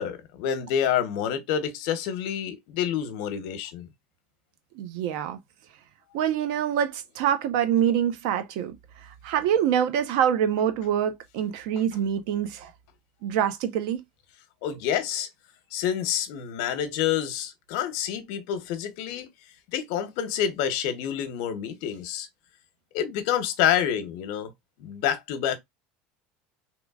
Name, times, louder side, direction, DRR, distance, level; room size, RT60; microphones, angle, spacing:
voice 1, 0.0-3.9 14.6-15.3 15.7-19.3 19.7-22.3 22.9-24.5 24.8-25.6, left 9 dB, 75° left, 0.9 m, -28 dB
voice 2, 4.8-5.4 6.1-8.7 9.2-12.7 13.2-14.0, right 9 dB, 75° right, 0.8 m, -25 dB
3.7 x 3.0 x 2.3 m
supercardioid pair, 130°, 4 cm